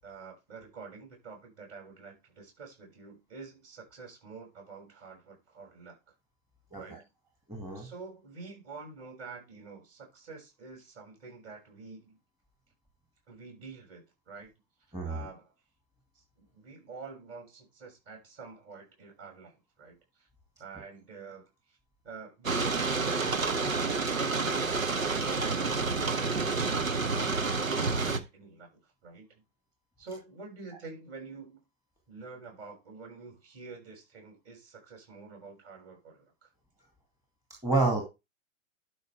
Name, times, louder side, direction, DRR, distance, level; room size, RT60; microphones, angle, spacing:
voice 1, 0.0-6.1 6.8-7.0 7.7-12.2 13.3-14.5 15.0-15.5 16.1-20.3 20.6-21.8 27.3-28.7 29.0-29.4 30.0-31.6 32.1-36.5, right 4 dB, 30° right, 6.7 m, -48 dB
voice 2, 7.5-7.9 14.9-15.3 37.6-38.0, right 3 dB, 5° right, 2.2 m, -28 dB
sound 1, 22.4-28.2, right 4 dB, 80° right, 1.2 m, -29 dB
12.0 x 5.7 x 3.4 m
figure-of-eight pair, 110°, 40 cm